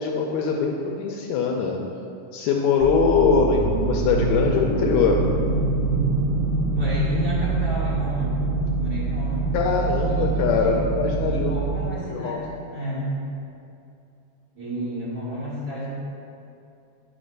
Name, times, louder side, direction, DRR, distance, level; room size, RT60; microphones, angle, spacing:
voice 1, 0.0-1.8 2.3-5.2 9.5-11.5 12.1-12.4, left 5 dB, 80° left, 1 dB, 1.8 m, -22 dB
sound 1, 2.8-11.9, right 3 dB, 70° right, 1.5 m, -25 dB
voice 2, 6.7-8.4 8.8-9.5 10.0-10.8 11.2-13.2 14.5-15.9, equal, 30° right, -10 dB, 2.5 m, -30 dB
8.8 x 4.2 x 6.6 m, 2.6 s
omnidirectional pair, 3.5 m